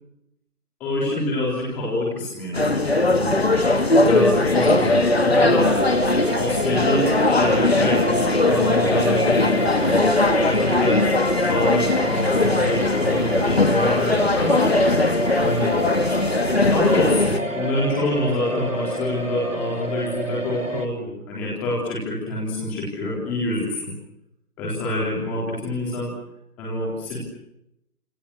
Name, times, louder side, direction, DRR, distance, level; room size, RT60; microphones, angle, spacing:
voice 1, 0.8-3.3 4.0-5.7 6.4-10.1 10.4-11.0 11.5-14.9 15.4-15.7 16.7-23.9 24.6-26.1 26.6-27.2, left 1 dB, 5° left, -5 dB, 3.9 m, -26 dB
sound 1, 2.5-17.4, left 2 dB, 40° left, 2.4 m, -20 dB
sound 2, 5.6-20.9, right 1 dB, 55° right, 3.3 m, -29 dB
29.0 x 28.0 x 6.5 m, 0.82 s
figure-of-eight pair, 170°, 46 cm